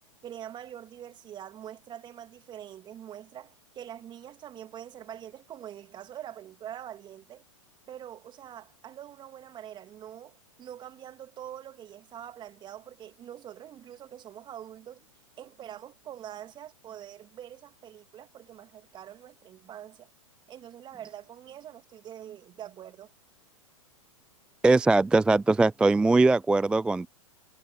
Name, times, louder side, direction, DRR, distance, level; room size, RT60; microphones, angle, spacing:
voice 1, 0.2-7.4 7.9-15.1 15.4-20.1 20.5-23.1, right 10 dB, 25° right, 2.1 m, -44 dB
voice 2, 24.6-27.1, right 3 dB, 5° right, 0.3 m, -21 dB
figure-of-eight pair, 105°, 17 cm